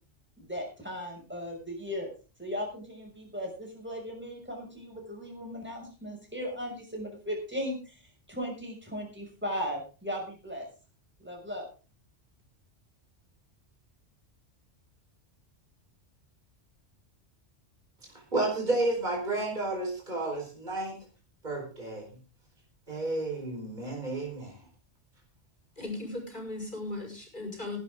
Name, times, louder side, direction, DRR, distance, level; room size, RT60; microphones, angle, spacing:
voice 1, 0.4-2.1 2.4-10.7 11.2-11.7, equal, 10° right, 0 dB, 6.4 m, -37 dB
voice 2, 18.3-21.0 21.4-22.1 22.9-24.6, right 2 dB, 40° right, -1 dB, 4.8 m, -31 dB
voice 3, 25.8-27.8, left 2 dB, 40° left, 1 dB, 5.9 m, -37 dB
18.5 x 11.5 x 3.8 m, 0.34 s
omnidirectional pair, 1.2 m